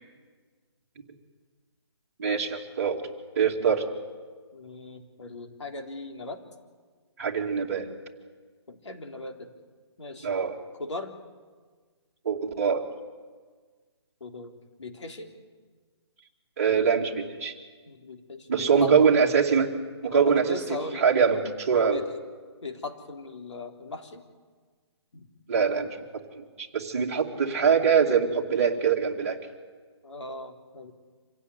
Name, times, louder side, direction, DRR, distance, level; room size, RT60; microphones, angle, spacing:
voice 1, 2.2-3.0 3.4-3.9 7.2-7.9 10.2-10.6 12.2-12.8 16.6-17.5 18.5-19.7 20.0-20.4 21.0-22.0 25.5-29.4, right 6 dB, 30° right, -1 dB, 2.6 m, -23 dB
voice 2, 4.5-6.4 8.7-9.5 10.0-10.3 10.8-11.1 14.2-15.3 17.9-18.9 20.0-21.1 21.9-22.1 22.6-24.2 25.1-25.3 30.0-30.9, left 2 dB, 90° left, 4 dB, 3.6 m, -38 dB
26.5 x 16.5 x 9.8 m, 1.5 s
hypercardioid pair, 180°, 15 cm